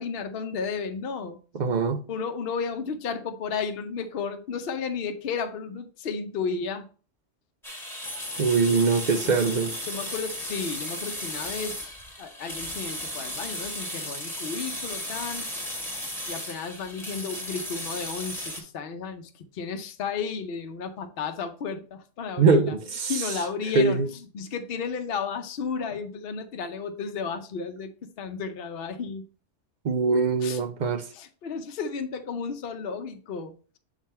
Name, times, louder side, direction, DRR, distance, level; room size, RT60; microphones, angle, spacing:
voice 1, 0.0-1.4 2.1-6.9 9.2-9.4 9.9-15.5 16.3-22.8 23.1-29.2 30.4-30.6 31.1-33.8, left 5 dB, 55° left, 0.9 m, -33 dB
voice 2, 1.5-2.0 8.4-9.8 22.4-23.1 23.8-24.1 29.8-31.1, right 4 dB, 55° right, 0.5 m, -22 dB
sound 1, 7.6-18.6, left 1 dB, ahead, 1.3 m, -35 dB
7.2 x 3.7 x 4.2 m
omnidirectional pair, 1.2 m